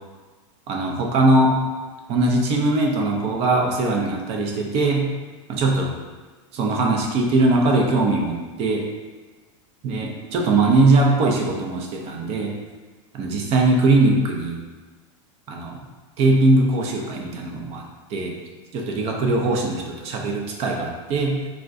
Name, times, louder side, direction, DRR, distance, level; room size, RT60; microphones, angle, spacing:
voice 1, 0.7-1.6 2.1-5.1 5.5-5.9 6.5-8.8 9.8-12.5 13.1-14.6 15.5-15.8 16.2-17.8 18.1-18.3 18.7-21.4, right 2 dB, 40° right, 0 dB, 0.5 m, -20 dB
2.4 x 2.1 x 3.6 m, 1.3 s
supercardioid pair, 135°, 17 cm